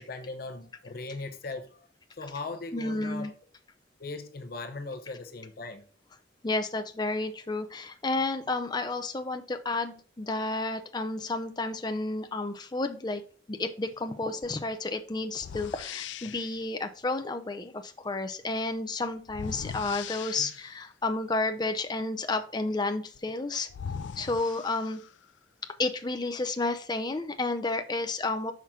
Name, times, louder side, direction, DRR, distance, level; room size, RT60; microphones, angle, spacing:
voice 1, 0.0-1.9 2.2-3.3 4.0-5.8, left 3 dB, 55° left, 0.7 m, -39 dB
voice 2, 2.7-3.3 6.4-13.2 13.5-23.7 24.2-25.0 25.8-28.5, left 2 dB, 25° left, 0.6 m, -31 dB
sound 1, 14.4-14.6 15.4-16.6 19.3-20.9 23.1-23.2 23.7-25.3, left 7 dB, 85° left, 0.4 m, -40 dB
5.9 x 5.8 x 3.6 m
head